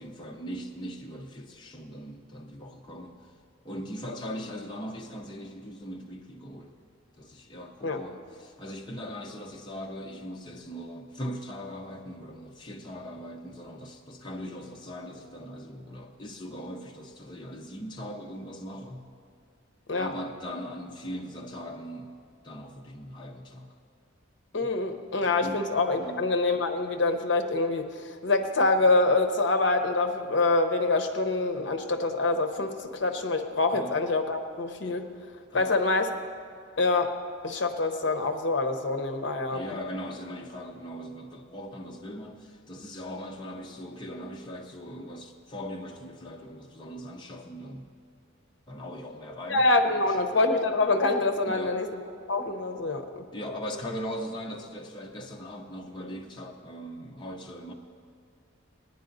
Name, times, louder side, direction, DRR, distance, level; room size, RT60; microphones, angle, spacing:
voice 1, 0.0-3.3 3.6-6.7 7.2-19.1 20.0-22.2 22.4-23.7 24.6-24.7 25.4-25.6 26.0-26.3 33.7-34.0 35.5-35.8 39.5-47.9 48.7-50.2 51.4-51.8 53.3-57.7, equal, 25° left, 0 dB, 0.7 m, -40 dB
voice 2, 24.5-27.9 28.2-35.1 35.5-36.1 36.8-37.1 37.4-39.6 49.5-51.9 52.3-53.2, left 3 dB, 60° left, 6 dB, 0.8 m, -25 dB
17.5 x 10.0 x 3.9 m, 2.3 s
head